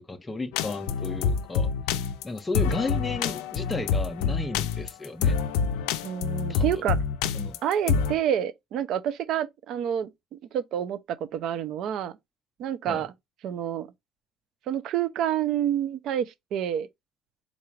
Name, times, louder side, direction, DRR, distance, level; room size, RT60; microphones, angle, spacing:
voice 1, 0.0-1.7 2.2-5.4 6.5-6.8 7.3-7.6 12.9-13.1, left 2 dB, 15° left, 0.4 m, -33 dB
sound 1, 0.5-8.2, left 6 dB, 85° left, 0.4 m, -26 dB
voice 2, 6.0-7.0 7.6-12.2 12.6-13.1 13.4-13.9 14.7-16.9, right 10 dB, 65° right, 0.5 m, -28 dB
3.8 x 2.3 x 3.1 m
cardioid pair, 105°, 0 cm